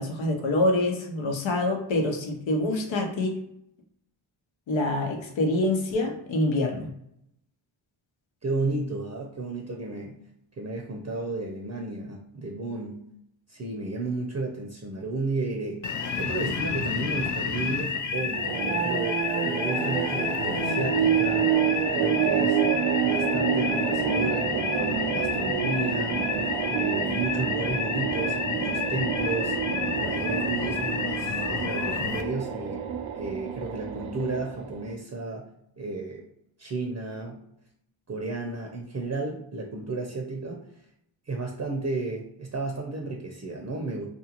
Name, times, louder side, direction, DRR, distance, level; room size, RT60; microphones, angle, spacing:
voice 1, 0.0-3.4 4.7-6.9, left 1 dB, 70° left, 2 dB, 0.8 m, -26 dB
voice 2, 8.4-10.2 10.6-13.0 13.5-15.8 16.2-21.5 21.9-22.6 23.0-26.2 26.7-29.6 30.0-32.8 33.2-35.5 35.8-36.2 36.6-37.4 38.1-40.6 41.3-44.1, right 3 dB, 30° right, 0 dB, 0.6 m, -33 dB
sound 1, 15.8-32.2, left 5 dB, 40° left, 0.4 m, -30 dB
sound 2, 18.3-34.9, right 8 dB, 85° right, 0.5 m, -28 dB
2.6 x 2.4 x 2.9 m, 0.76 s
cardioid pair, 55°, 48 cm